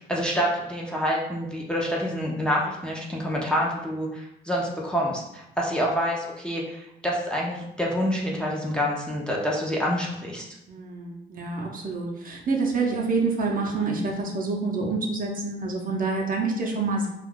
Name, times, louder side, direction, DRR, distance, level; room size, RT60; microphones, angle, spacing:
voice 1, 0.1-10.5, equal, 5° left, -3 dB, 0.5 m, -27 dB
voice 2, 10.7-17.1, right 3 dB, 45° right, -1 dB, 0.7 m, -27 dB
2.4 x 2.3 x 3.6 m, 0.85 s
cardioid pair, 90°, 20 cm